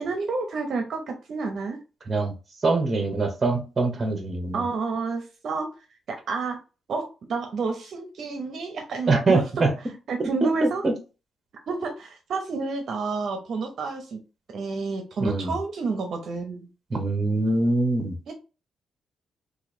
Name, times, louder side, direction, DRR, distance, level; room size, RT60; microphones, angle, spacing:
voice 1, 0.0-1.8 4.5-5.7 6.3-6.6 6.9-7.0 7.3-9.4 10.1-10.8 11.7-14.2 14.5-16.7 18.3-18.4, right 4 dB, 50° right, 5 dB, 0.7 m, -29 dB
voice 2, 2.6-4.6 9.1-9.7 10.2-10.9 15.2-15.6 16.9-18.2, right 3 dB, 25° right, 4 dB, 0.9 m, -24 dB
3.0 x 2.6 x 4.2 m, 0.32 s
cardioid pair, 170°, 0 cm